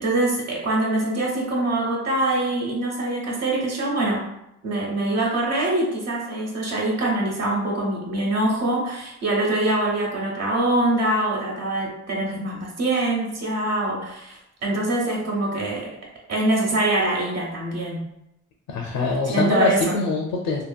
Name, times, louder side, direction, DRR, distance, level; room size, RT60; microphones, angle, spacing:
voice 1, 0.0-4.3 4.6-15.9 16.3-18.0 19.3-20.0, right 2 dB, 60° right, -2 dB, 1.0 m, -24 dB
voice 2, 18.7-20.6, left 3 dB, 85° left, 0 dB, 0.5 m, -23 dB
2.7 x 2.7 x 2.3 m, 0.81 s
cardioid pair, 90°, 30 cm